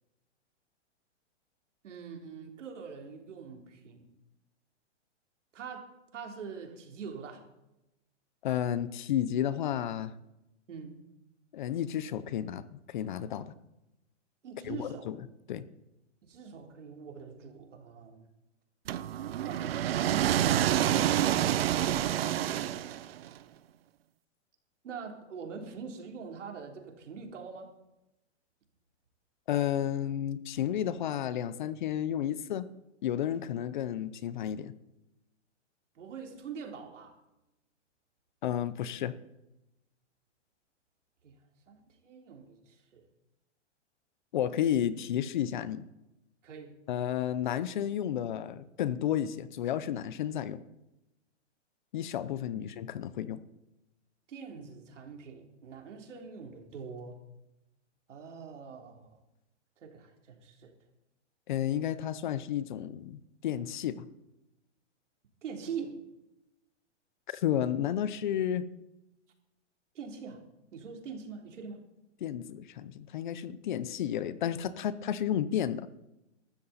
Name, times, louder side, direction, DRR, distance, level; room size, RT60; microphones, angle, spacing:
voice 1, 1.8-4.1 5.5-7.4 10.7-11.0 14.4-15.1 16.2-18.3 24.8-27.7 36.0-37.2 41.2-41.4 41.7-43.1 46.4-46.7 52.5-52.6 54.3-57.2 58.1-59.2 59.8-60.7 65.4-66.0 70.0-70.4 70.7-71.8, right 6 dB, 85° right, 2 dB, 3.4 m, -44 dB
voice 2, 8.4-10.1 11.5-13.5 14.7-15.2 15.5-15.6 29.5-32.7 33.0-34.7 38.4-39.2 44.3-45.9 46.9-50.6 51.9-53.4 61.5-64.1 67.3-68.7 72.2-75.9, left 10 dB, 40° left, 16 dB, 0.7 m, -32 dB
sound 1, 18.9-23.3, right 11 dB, 55° right, 0.7 m, -28 dB
15.5 x 13.0 x 4.2 m, 0.91 s
hypercardioid pair, 165°, 36 cm